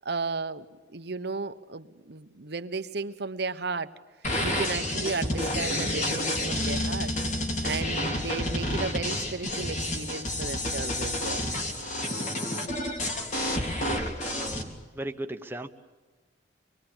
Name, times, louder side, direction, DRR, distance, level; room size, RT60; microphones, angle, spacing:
voice 1, 0.0-3.9 4.4-7.1 7.6-11.5, right 4 dB, 60° right, 11 dB, 1.1 m, -34 dB
sound 1, 4.2-14.6, left 1 dB, 40° left, 3.3 m, -29 dB
voice 2, 13.9-14.7 14.9-15.7, right 1 dB, 10° right, 6 dB, 1.2 m, -37 dB
26.0 x 21.5 x 8.9 m, 1.3 s
head